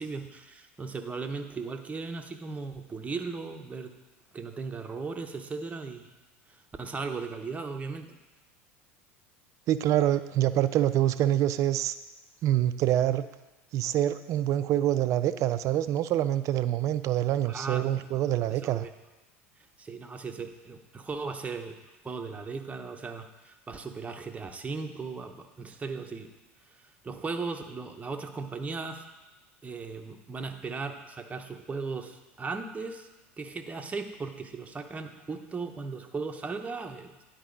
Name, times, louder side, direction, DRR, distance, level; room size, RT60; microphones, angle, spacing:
voice 1, 0.0-3.9 4.3-6.1 6.5-8.2 17.4-18.0 18.5-18.9 19.8-21.8 22.0-26.3 27.0-29.0 29.6-33.1 33.4-37.1, right 4 dB, 20° right, 5 dB, 0.8 m, -37 dB
voice 2, 9.7-11.9 12.4-13.2 13.7-18.9, right 12 dB, 45° right, 13 dB, 0.4 m, -26 dB
10.0 x 4.7 x 3.9 m, 1.1 s
hypercardioid pair, 75°, 7 cm